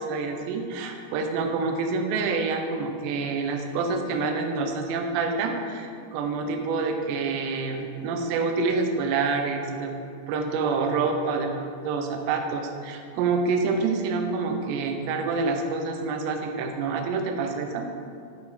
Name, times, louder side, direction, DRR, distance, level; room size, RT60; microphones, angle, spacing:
voice 1, 0.0-9.9 10.3-17.9, right 4 dB, 80° right, 4 dB, 2.9 m, -27 dB
10.5 x 4.3 x 4.1 m, 2.5 s
omnidirectional pair, 5.2 m